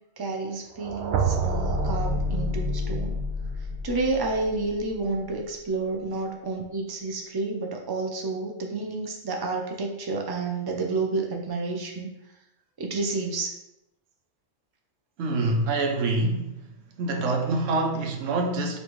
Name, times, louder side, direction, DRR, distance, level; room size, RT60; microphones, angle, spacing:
voice 1, 0.2-3.1 3.8-12.1 12.8-13.5, right 3 dB, 40° right, 2 dB, 0.3 m, -30 dB
sound 1, 0.8-4.8, right 1 dB, 65° right, 0.7 m, -28 dB
voice 2, 15.2-16.6 17.0-18.8, right 2 dB, 85° right, 3 dB, 1.0 m, -26 dB
5.2 x 2.8 x 3.1 m, 0.87 s
omnidirectional pair, 1.3 m